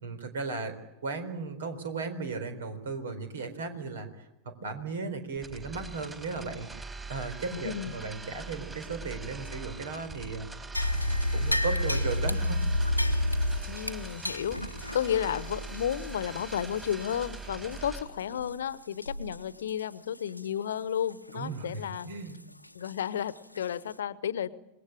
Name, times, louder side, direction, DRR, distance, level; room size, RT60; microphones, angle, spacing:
voice 1, 0.0-0.8 1.0-12.9 21.3-22.4, right 4 dB, 65° right, 10 dB, 4.1 m, -36 dB
sound 1, 5.4-18.0, right 3 dB, 15° right, 4.4 m, -42 dB
voice 2, 7.5-7.9 13.7-22.1 22.7-24.5, left 9 dB, 65° left, 18 dB, 1.1 m, -32 dB
sound 2, 10.7-17.3 17.7-17.8 18.3-18.5 19.0-19.4 19.7-19.8 20.4-20.5 22.8-22.9 23.5-23.6, left 1 dB, 90° left, 0.9 m, -30 dB
27.0 x 21.0 x 8.9 m, 0.93 s
figure-of-eight pair, 90°, 0 cm